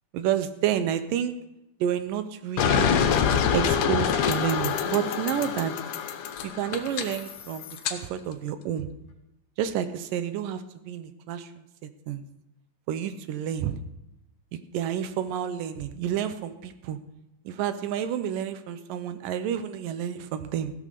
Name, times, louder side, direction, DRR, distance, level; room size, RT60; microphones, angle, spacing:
voice 1, 0.1-1.3 1.8-3.0 3.5-5.7 6.4-8.9 9.6-11.5 12.1-12.2 12.9-13.8 14.5-17.0 17.5-20.7, right 9 dB, 85° right, 10 dB, 2.6 m, -29 dB
sound 1, 2.6-8.0, left 7 dB, 70° left, 2.5 m, -26 dB
16.0 x 9.1 x 6.8 m, 0.90 s
omnidirectional pair, 3.8 m